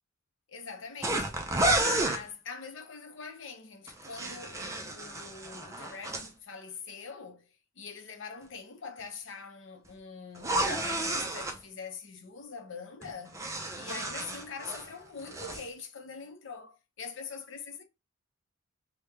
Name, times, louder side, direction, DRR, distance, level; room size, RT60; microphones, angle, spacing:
voice 1, 0.5-7.5 7.8-13.4 13.8-17.8, left 5 dB, 60° left, 0.7 m, -43 dB
sound 1, 1.0-2.2 3.9-6.3 10.4-11.6 13.0-14.9 15.2-15.6, right 1 dB, 15° right, 0.4 m, -31 dB
3.3 x 2.2 x 3.2 m
head